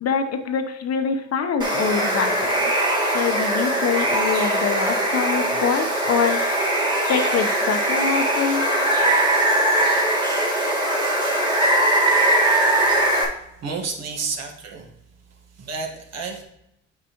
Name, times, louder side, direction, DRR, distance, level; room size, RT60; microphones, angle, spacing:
voice 1, 0.0-2.7 3.1-6.4 7.1-8.7, left 6 dB, 60° left, 7 dB, 0.8 m, -24 dB
Water, 1.6-13.3, right 1 dB, 15° right, 1.7 m, -21 dB
voice 2, 12.7-13.2 13.6-14.9 15.3-16.4, right 4 dB, 60° right, 2 dB, 1.5 m, -32 dB
8.4 x 4.9 x 2.9 m, 0.80 s
cardioid pair, 95°, 29 cm